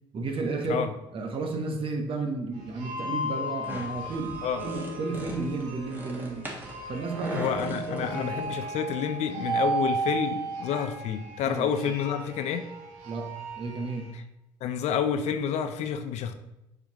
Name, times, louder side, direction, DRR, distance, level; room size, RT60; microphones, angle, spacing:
voice 1, 0.1-0.8 1.1-6.5 6.9-8.4 11.4-11.9 13.0-14.1, right 3 dB, 45° right, 1.3 m, -33 dB
sound 1, 2.5-14.1, right 2 dB, 75° right, 1.4 m, -35 dB
sound 2, 3.6-8.6, right 1 dB, 15° right, 1.7 m, -41 dB
voice 2, 7.3-12.7 14.6-16.3, left 8 dB, 65° left, 0.6 m, -29 dB
6.7 x 4.8 x 3.0 m
hypercardioid pair, 65°, 12 cm